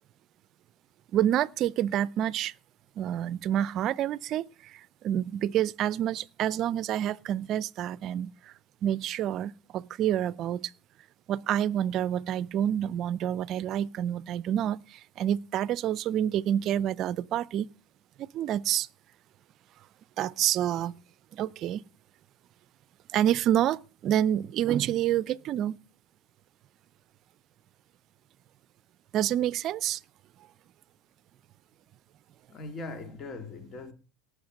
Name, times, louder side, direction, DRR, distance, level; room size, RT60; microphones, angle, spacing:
voice 1, 1.1-2.5 3.0-8.3 8.8-10.7 11.3-17.7 18.2-18.9 20.2-20.9 21.3-21.8 23.1-25.8 29.1-30.0, right 11 dB, 50° right, 0.5 m, -28 dB
voice 2, 32.5-33.9, left 3 dB, 40° left, 3.0 m, -40 dB
18.0 x 6.6 x 6.4 m
supercardioid pair, 100°, 0 cm